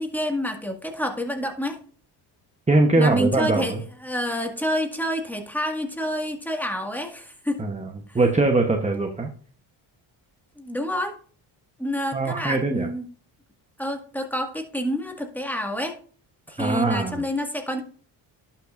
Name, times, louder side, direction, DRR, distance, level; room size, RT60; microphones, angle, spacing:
voice 1, 0.0-1.8 3.0-7.6 8.1-8.2 10.6-11.2 11.8-13.1 13.8-16.0 16.5-17.8, equal, 5° left, 3 dB, 1.9 m, -28 dB
voice 2, 2.7-3.8 7.6-7.9 8.1-9.3 12.1-12.9 16.6-17.2, right 2 dB, 15° right, 4 dB, 1.0 m, -21 dB
11.5 x 5.8 x 2.6 m, 0.43 s
supercardioid pair, 65°, 50 cm